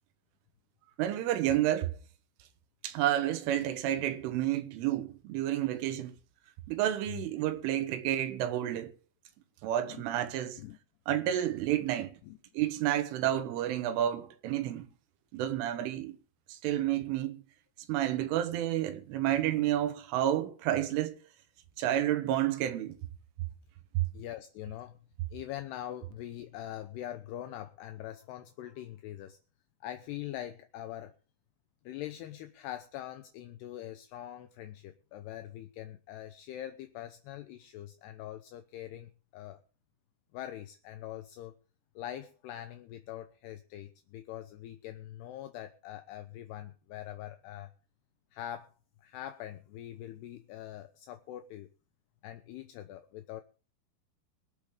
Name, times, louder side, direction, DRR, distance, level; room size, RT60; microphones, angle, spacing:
voice 1, 1.0-2.0 2.8-6.1 6.7-8.9 9.6-10.6 11.1-12.2 12.6-14.9 15.3-16.2 16.5-17.4 17.9-21.2 21.8-23.0 24.0-24.1, right 12 dB, 90° right, 3.8 m, -30 dB
voice 2, 24.1-25.0 25.3-29.4 29.8-31.1 31.9-39.6 40.3-41.6 42.0-47.7 48.3-48.7 49.0-51.7 52.2-53.4, left 12 dB, 75° left, 2.6 m, -43 dB
24.0 x 8.4 x 3.7 m
omnidirectional pair, 5.5 m